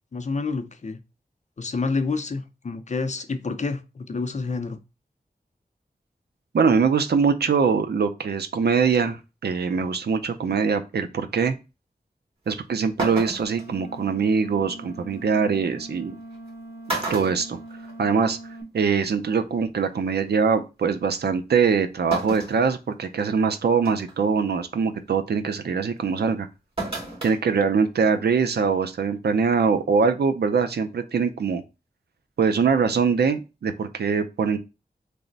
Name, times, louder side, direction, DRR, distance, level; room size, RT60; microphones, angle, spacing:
voice 1, 0.1-1.0 1.6-4.8, left 4 dB, 45° left, 0.5 m, -28 dB
voice 2, 6.5-11.6 12.5-16.2 17.1-17.6 18.0-18.4 18.7-26.5 27.2-31.6 32.4-34.6, right 5 dB, 80° right, 0.5 m, -23 dB
sound 1, 12.5-12.6 13.0-13.6 15.2-15.3 16.3-16.5 16.9-18.3 18.6-18.7 19.9-20.0 22.1-22.6 23.2-23.3 23.8-24.1 26.8-27.4 27.7-27.8, right 2 dB, 35° right, 1.7 m, -31 dB
sound 2, 13.4-18.6, right 1 dB, 20° right, 0.9 m, -42 dB
3.2 x 2.0 x 3.8 m
wide cardioid pair, 55°, 17 cm